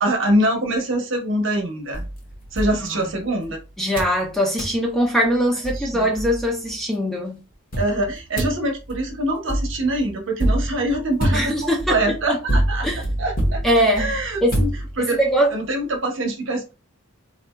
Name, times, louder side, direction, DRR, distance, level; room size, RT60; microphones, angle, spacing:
voice 1, 0.0-2.1 2.5-3.6 5.7-6.1 7.8-12.9 13.2-13.6 14.0-14.7 15.0-15.2 15.5-16.7, right 1 dB, 60° right, 0.9 m, -24 dB
sound 1, 1.9-3.5 4.0-4.2 4.6-4.8 5.3-5.4 5.6-6.7 7.7-15.3, right 1 dB, 40° left, 1.0 m, -26 dB
voice 2, 3.8-7.4 11.3-12.0 12.3-12.4 12.8-13.0 13.6-14.1 14.4-14.6 15.0-15.5, equal, ahead, 0.5 m, -21 dB
4.1 x 2.5 x 2.2 m
head